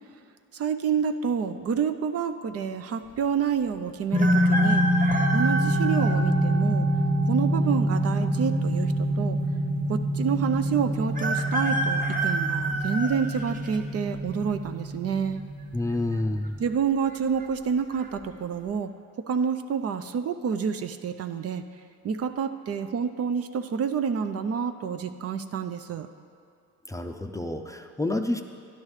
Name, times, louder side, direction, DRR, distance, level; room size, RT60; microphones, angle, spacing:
voice 1, 0.5-4.8 5.3-6.9 7.3-9.4 9.9-15.4 16.6-18.9 19.3-21.6 22.0-26.1, right 6 dB, 50° right, 8 dB, 0.6 m, -28 dB
sound 1, 4.1-16.7, equal, 10° right, 1.1 m, -26 dB
sound 2, 4.1-6.2 6.8-6.9 8.0-8.7 9.0-9.1 9.2-9.3 11.1-13.8 14.3-14.7 15.8-16.2 16.4-16.5 17.1-17.4 17.9-18.1, right 2 dB, 25° right, 0.9 m, -29 dB
voice 2, 15.7-16.6 26.9-28.4, left 2 dB, 10° left, 5 dB, 0.5 m, -29 dB
12.5 x 10.5 x 3.3 m, 2.3 s
cardioid pair, 90°, 30 cm